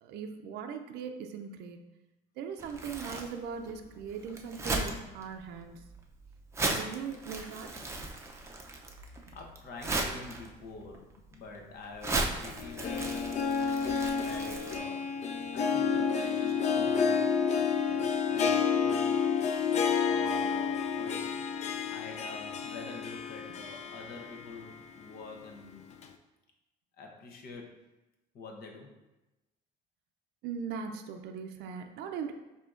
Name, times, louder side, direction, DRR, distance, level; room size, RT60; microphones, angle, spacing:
voice 1, 0.0-1.8 2.4-5.8 6.7-7.7 9.3-9.4 19.7-19.9 30.4-32.3, right 6 dB, 80° right, 5 dB, 0.4 m, -39 dB
Crumpling crinkling, 2.6-14.8, right 2 dB, 15° right, 0.5 m, -37 dB
voice 2, 9.3-13.4 14.2-15.1 15.5-17.4 17.9-19.3 20.0-25.9 27.0-27.8 28.3-29.0, left 3 dB, 65° left, 2 dB, 0.9 m, -46 dB
Harp, 12.6-24.7 25.1-25.2 26.0-26.1, left 6 dB, 40° left, 0.4 m, -30 dB
7.3 x 2.8 x 2.5 m, 1.0 s
cardioid pair, 110°, 17 cm